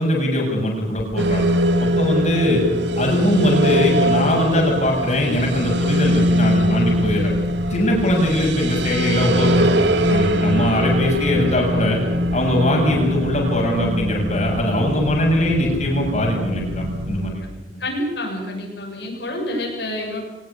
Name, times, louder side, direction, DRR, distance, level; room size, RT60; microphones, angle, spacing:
voice 1, 0.0-2.6 3.0-7.3 7.7-12.0 12.3-17.4, left 1 dB, 40° left, -1 dB, 7.6 m, -21 dB
sound 1, 1.0-17.1, equal, 30° right, 5.9 m, -34 dB
sound 2, 1.2-17.3, equal, 70° right, 2.3 m, -22 dB
voice 2, 17.8-20.2, left 1 dB, 65° left, -1 dB, 7.2 m, -27 dB
23.5 x 21.0 x 8.6 m, 1.1 s
head